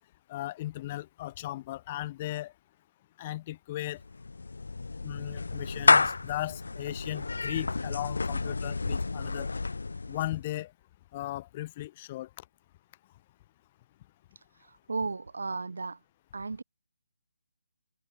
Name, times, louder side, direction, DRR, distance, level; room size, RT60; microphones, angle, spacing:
voice 1, 0.3-2.5 3.2-4.0 5.0-9.5 10.1-10.7 11.1-12.4, left 15 dB, 15° left, 0.8 m, -37 dB
Clapping / Meow, 4.0-10.4, left 3 dB, 85° left, 0.9 m, -29 dB
voice 2, 14.6-16.0 16.3-16.6, right 3 dB, 75° right, 2.3 m, -34 dB
hypercardioid pair, 180°, 0 cm